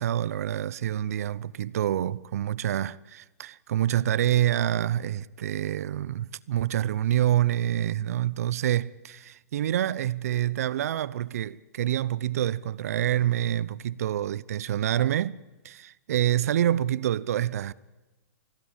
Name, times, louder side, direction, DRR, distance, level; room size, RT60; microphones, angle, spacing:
voice 1, 0.0-15.4 15.6-17.7, right 11 dB, 65° right, 0.8 m, -27 dB
29.0 x 16.5 x 8.9 m
hypercardioid pair, 130°, 9 cm